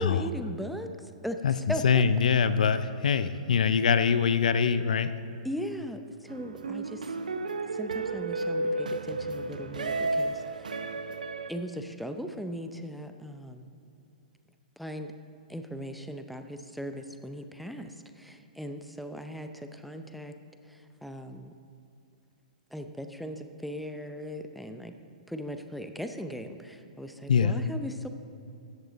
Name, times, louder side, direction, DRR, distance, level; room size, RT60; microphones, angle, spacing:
voice 1, 0.0-2.0 5.4-7.2 7.7-10.7 11.5-13.7 14.8-15.1 15.5-20.3 20.6-21.5 22.7-24.9 25.3-28.1, equal, ahead, 6 dB, 0.6 m, -38 dB
voice 2, 1.8-5.1 27.3-27.6, left 6 dB, 75° left, 13 dB, 0.5 m, -24 dB
sound 1, 6.3-11.5, right 2 dB, 90° right, 0.6 m, -32 dB
14.0 x 7.6 x 4.0 m, 2.6 s
hypercardioid pair, 130°, 4 cm